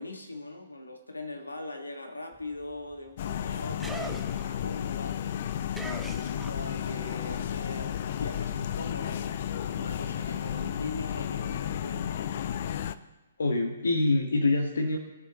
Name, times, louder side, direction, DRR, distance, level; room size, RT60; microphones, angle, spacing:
voice 1, 0.0-5.2 5.7-12.3 12.6-13.1, left 2 dB, 85° left, 5 dB, 1.5 m, -41 dB
sound 1, 2.3-7.0 7.3-10.6, right 2 dB, 5° right, 0.6 m, -45 dB
sound 2, 3.2-13.0, left 9 dB, 45° left, 0.5 m, -33 dB
voice 2, 13.4-15.0, left 2 dB, 70° left, 2 dB, 1.3 m, -25 dB
19.5 x 6.7 x 2.9 m, 1.1 s
figure-of-eight pair, 130°, 0 cm